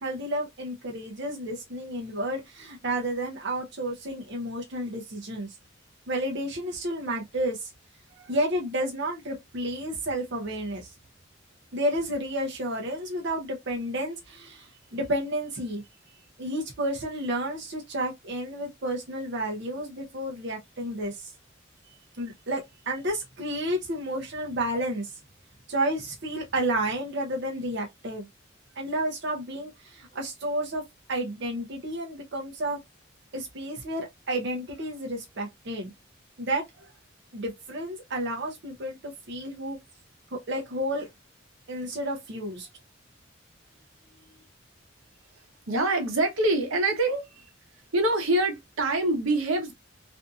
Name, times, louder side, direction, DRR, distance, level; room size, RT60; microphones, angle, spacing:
voice 1, 0.0-5.5 6.1-7.7 8.1-10.9 11.7-15.8 16.4-21.3 22.2-25.1 25.7-28.3 28.8-30.8 31.1-32.8 33.3-35.9 36.4-36.9 37.3-39.8 40.3-41.1 41.7-42.7, right 1 dB, 55° right, 0.6 m, -31 dB
voice 2, 45.7-47.5 47.9-49.7, right 2 dB, 90° right, 0.8 m, -25 dB
2.6 x 2.5 x 2.3 m
head